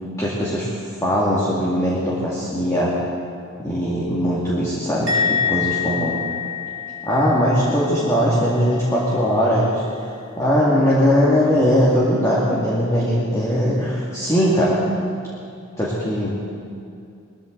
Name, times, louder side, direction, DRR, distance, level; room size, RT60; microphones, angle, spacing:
voice 1, 0.2-0.7 1.0-2.9 3.6-6.2 7.0-14.8 15.8-16.4, equal, 15° left, -7 dB, 2.1 m, -20 dB
Musical instrument, 5.1-8.5 8.7-9.2, left 7 dB, 75° right, 2.4 m, -26 dB
21.0 x 14.5 x 3.9 m, 2.4 s
head